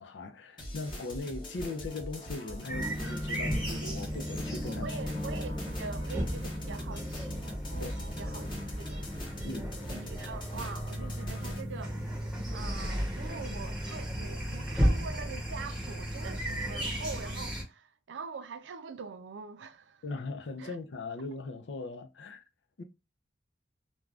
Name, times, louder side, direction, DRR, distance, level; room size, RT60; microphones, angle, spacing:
voice 1, 0.0-5.0 5.3-5.4 7.8-7.9 9.4-9.9 20.0-22.4 22.8-22.9, left 2 dB, 75° left, 0.5 m, -39 dB
sound 1, 0.6-11.6, equal, 25° left, 0.8 m, -42 dB
garden heighborhood two cars, 2.7-17.6, equal, 5° right, 0.8 m, -34 dB
voice 2, 4.8-8.4 8.8-9.1 9.9-12.0 12.5-20.0 20.6-20.8, right 5 dB, 90° right, 0.4 m, -43 dB
2.5 x 2.2 x 3.2 m
head